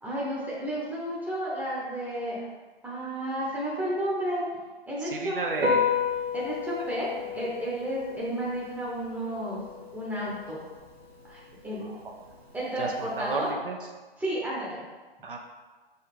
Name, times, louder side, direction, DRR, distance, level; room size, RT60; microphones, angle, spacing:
voice 1, 0.0-2.5 2.8-4.4 4.9-5.4 6.3-7.1 7.3-9.6 9.9-10.6 11.3-11.9 12.5-13.5 14.2-14.8, right 1 dB, 5° right, -6 dB, 1.0 m, -32 dB
voice 2, 5.0-5.9 11.8-12.1 12.8-13.9 15.2-15.4, right 3 dB, 60° right, 2 dB, 0.7 m, -33 dB
Piano, 5.5-13.5, left 6 dB, 90° right, 1.0 m, -33 dB
5.4 x 3.4 x 5.3 m, 1.3 s
figure-of-eight pair, 120°, 30 cm